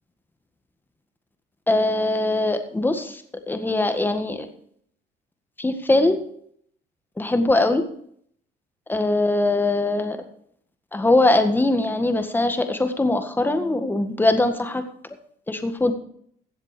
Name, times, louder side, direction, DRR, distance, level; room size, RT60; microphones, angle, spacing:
voice 1, 1.7-4.5 5.6-6.2 7.2-7.8 8.9-10.2 10.9-14.8 15.5-15.9, left 2 dB, 10° left, 7 dB, 1.8 m, -21 dB
16.0 x 7.4 x 5.2 m, 0.63 s
cardioid pair, 110°, 17 cm